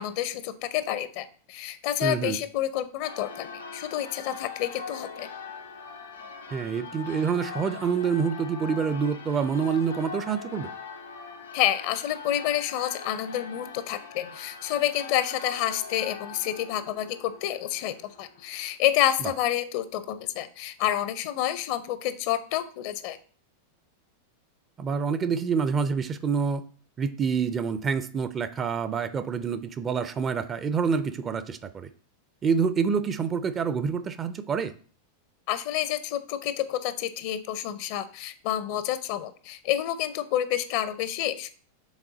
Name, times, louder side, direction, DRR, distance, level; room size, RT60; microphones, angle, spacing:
voice 1, 0.0-5.3 11.5-23.2 35.5-41.5, left 12 dB, 45° left, 0.6 m, -29 dB
voice 2, 2.0-2.4 6.5-10.7 19.2-19.3 24.8-26.6 27.0-31.9 32.4-34.7, right 6 dB, 25° right, 0.4 m, -27 dB
Church bell, 3.0-18.8, left 5 dB, 70° left, 0.9 m, -42 dB
7.2 x 3.8 x 3.8 m
figure-of-eight pair, 90°, 0 cm